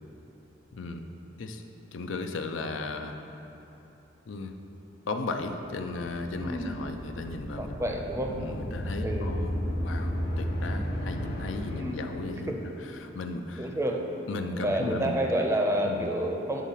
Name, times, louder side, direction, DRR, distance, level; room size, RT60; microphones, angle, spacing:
voice 1, 0.7-1.0 1.4-1.6 1.9-3.2 4.3-4.5 5.1-9.5 9.8-13.7 14.3-15.2 15.8-16.1, left 3 dB, 80° left, 5 dB, 0.5 m, -36 dB
sound 1, 6.0-12.7, equal, 50° left, 1.1 m, -34 dB
voice 2, 6.3-6.7 7.6-8.3 9.0-9.3 11.6-12.0 12.5-12.6 13.6-14.0 14.5-16.6, right 1 dB, 15° right, 1 dB, 0.6 m, -29 dB
9.5 x 3.6 x 5.7 m, 3.0 s
head